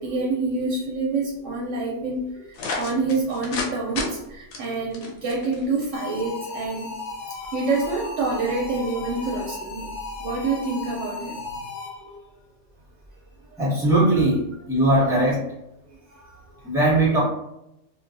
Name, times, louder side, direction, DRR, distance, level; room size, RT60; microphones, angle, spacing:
voice 1, 0.0-2.2 2.8-6.9 7.5-9.9 10.2-11.4 12.0-12.1 15.0-15.1, right 3 dB, 70° right, -2 dB, 0.9 m, -27 dB
sound 1, 2.5-3.7 4.0-4.1 4.5-5.9, left 3 dB, 85° left, 1.0 m, -30 dB
sound 2, 5.9-12.2, left 4 dB, 70° left, 0.4 m, -36 dB
voice 2, 13.6-15.4 16.6-17.2, right 1 dB, 5° right, -8 dB, 0.9 m, -20 dB
2.4 x 2.3 x 2.5 m, 0.84 s
omnidirectional pair, 1.4 m